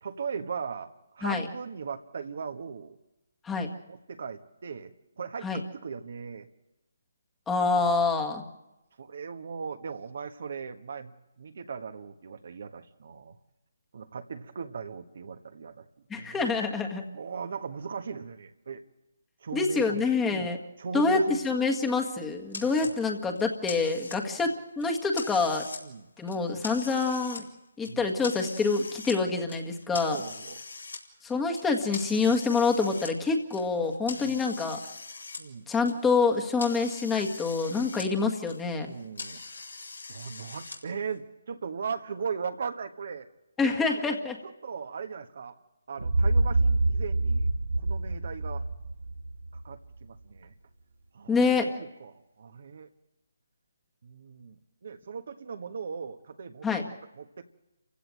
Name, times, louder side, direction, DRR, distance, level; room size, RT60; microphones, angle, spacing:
voice 1, 0.0-3.0 3.9-6.5 9.0-13.4 13.9-15.9 16.1-16.5 17.1-18.8 19.4-20.0 20.3-21.4 22.8-22.9 24.1-24.4 25.8-26.1 27.8-28.1 30.1-30.6 34.0-34.4 35.4-35.7 38.0-38.2 38.8-39.6 40.1-43.3 43.6-43.8 44.4-45.5 45.9-47.5 47.8-48.6 49.5-50.5 51.1-52.9 54.0-56.7 57.2-57.4, right 6 dB, 55° right, 7 dB, 1.5 m, -38 dB
voice 2, 7.5-8.4 16.1-17.0 19.5-20.6 20.9-25.6 26.2-27.4 27.8-30.2 31.2-34.8 35.7-38.9 43.6-44.4 51.3-51.7 56.6-56.8, left 4 dB, 10° left, 3 dB, 1.8 m, -26 dB
sound 1, 22.5-22.9 23.4-24.4 24.8-25.8 26.2-27.4 27.8-29.2 29.5-31.0 31.5-35.4 35.7-38.1 38.4-40.8, left 3 dB, 85° left, 4.4 m, -42 dB
sound 2, 46.0-49.9, right 2 dB, 75° right, 1.2 m, -26 dB
29.0 x 16.0 x 7.8 m, 0.97 s
figure-of-eight pair, 150°, 0 cm